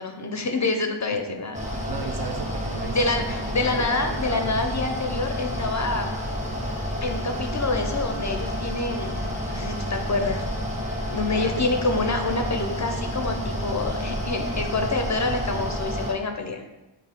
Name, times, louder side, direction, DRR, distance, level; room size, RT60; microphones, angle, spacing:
voice 1, 0.0-1.6 2.9-6.1 7.0-9.2 9.5-10.4 11.1-16.6, left 3 dB, 40° left, 4 dB, 0.5 m, -27 dB
Mechanical fan, 1.5-16.1, equal, 15° right, 1.0 m, -30 dB
voice 2, 1.9-4.6 11.3-11.7, right 4 dB, 50° right, 4 dB, 0.5 m, -35 dB
6.3 x 2.1 x 3.5 m, 1.0 s
wide cardioid pair, 50°, 48 cm